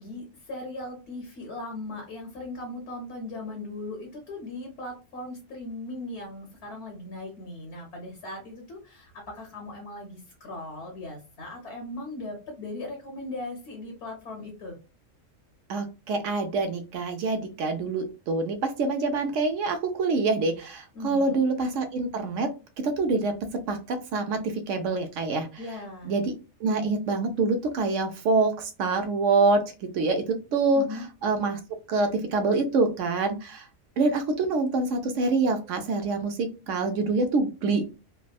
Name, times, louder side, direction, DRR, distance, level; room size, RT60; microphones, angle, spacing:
voice 1, 0.0-14.8 20.9-21.4 25.6-26.1 30.7-31.0, left 2 dB, 60° left, 2 dB, 1.0 m, -38 dB
voice 2, 15.7-22.5 22.8-23.3 23.7-24.4 24.7-25.5 26.1-26.2 26.6-28.5 28.8-29.6 29.9-30.8 31.2-31.6 31.9-33.6 34.0-37.8, right 3 dB, 75° right, 7 dB, 0.9 m, -25 dB
3.4 x 2.0 x 2.2 m, 0.31 s
omnidirectional pair, 1.3 m